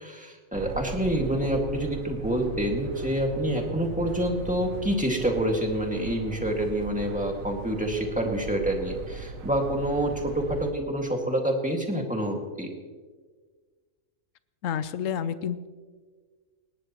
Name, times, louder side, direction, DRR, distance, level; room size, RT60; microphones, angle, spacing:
voice 1, 0.2-12.7, right 1 dB, 5° right, 1 dB, 2.0 m, -27 dB
sound 1, 0.5-10.7, right 6 dB, 90° right, 1.3 m, -38 dB
voice 2, 14.6-15.7, left 8 dB, 75° left, 13 dB, 1.1 m, -29 dB
19.5 x 17.5 x 3.1 m, 1.5 s
omnidirectional pair, 1.4 m